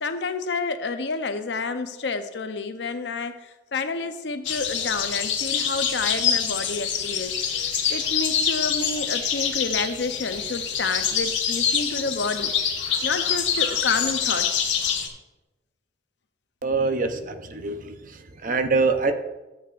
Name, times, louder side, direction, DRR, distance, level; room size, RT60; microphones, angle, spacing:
voice 1, 0.0-7.4 7.9-12.5 13.0-14.6, left 4 dB, 65° left, 9 dB, 0.7 m, -29 dB
sound 1, 4.4-15.1, left 7 dB, 90° left, 1.4 m, -25 dB
voice 2, 16.6-18.0 18.4-19.1, right 4 dB, 45° right, 7 dB, 0.7 m, -24 dB
13.0 x 8.0 x 2.5 m, 1.1 s
head